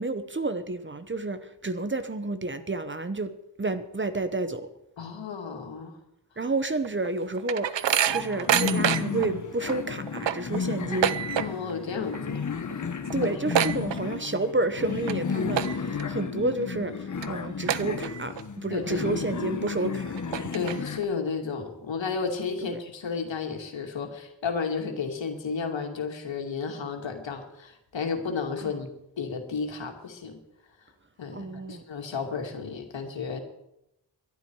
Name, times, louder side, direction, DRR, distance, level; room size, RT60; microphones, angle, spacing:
voice 1, 0.0-3.3 3.6-4.7 6.4-11.1 13.1-20.2 22.6-22.8 28.6-28.7 31.3-31.8, right 2 dB, 25° right, 11 dB, 0.9 m, -30 dB
voice 2, 5.0-5.9 11.4-12.4 13.2-13.3 14.0-14.1 18.7-19.2 20.5-28.9 29.2-30.4 31.2-33.4, left 5 dB, 85° left, 3 dB, 2.5 m, -32 dB
sound 1, 6.8-9.3 9.7-9.8 10.1-11.8 12.0-12.4 12.7-12.8 13.1-14.5 14.9-15.1 15.5-16.0 16.5-16.6 17.2-17.3 17.7-18.4 18.8-18.9 19.7-19.8 20.2-21.1, right 10 dB, 75° right, 0.7 m, -27 dB
sound 2, 8.1-21.0, left 5 dB, 40° left, 1.1 m, -33 dB
22.0 x 11.5 x 4.7 m, 0.85 s
wide cardioid pair, 145°, 44 cm